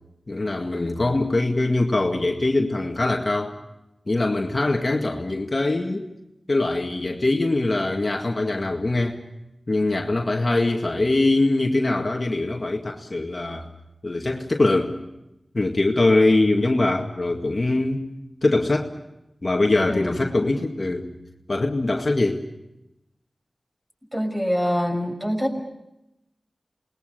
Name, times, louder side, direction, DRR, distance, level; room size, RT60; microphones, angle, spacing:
voice 1, 0.3-3.6 4.1-6.1 6.5-9.2 9.7-13.7 14.0-15.0 15.5-18.0 18.4-18.9 19.4-21.1 21.5-22.4, left 2 dB, 45° left, 2 dB, 2.0 m, -22 dB
voice 2, 24.1-25.6, equal, 10° right, 3 dB, 6.0 m, -25 dB
28.0 x 20.5 x 6.8 m, 0.89 s
wide cardioid pair, 65°, 0 cm